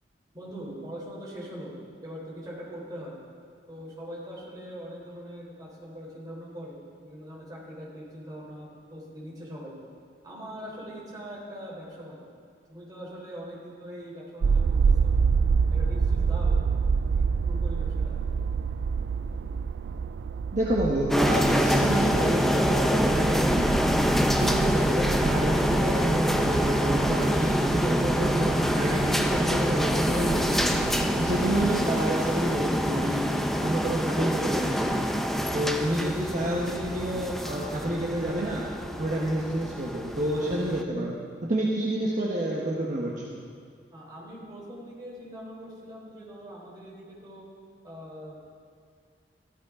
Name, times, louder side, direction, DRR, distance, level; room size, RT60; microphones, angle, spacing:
voice 1, 0.3-1.7 2.0-3.1 3.7-9.7 10.2-12.2 12.7-15.1 15.7-16.6 17.1-18.2 43.9-47.4 47.8-48.4, equal, 20° right, -5 dB, 3.7 m, -42 dB
sound 1, 14.4-31.8, right 5 dB, 75° right, 0.3 m, -28 dB
voice 2, 20.5-23.8 24.3-30.8 31.2-33.3 33.6-35.2 35.5-38.7 39.0-41.2 41.4-43.3, right 1 dB, 45° right, -4 dB, 1.3 m, -29 dB
sound 2, 21.1-40.8, equal, ahead, 0.5 m, -26 dB
15.0 x 13.0 x 3.8 m, 2.1 s
head